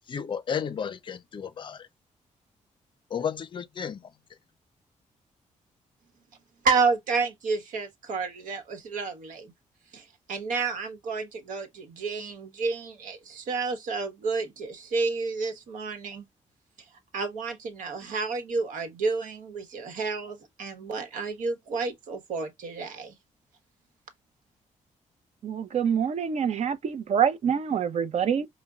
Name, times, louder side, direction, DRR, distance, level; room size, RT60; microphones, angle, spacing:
voice 1, 0.1-1.9 3.1-4.1, left 7 dB, 40° left, 0.5 m, -33 dB
voice 2, 6.6-9.5 9.9-16.2 17.1-23.1, right 4 dB, 80° right, 1.2 m, -30 dB
voice 3, 25.4-28.5, right 8 dB, 55° right, 0.7 m, -26 dB
5.1 x 2.2 x 2.3 m
cardioid pair, 100°, 13 cm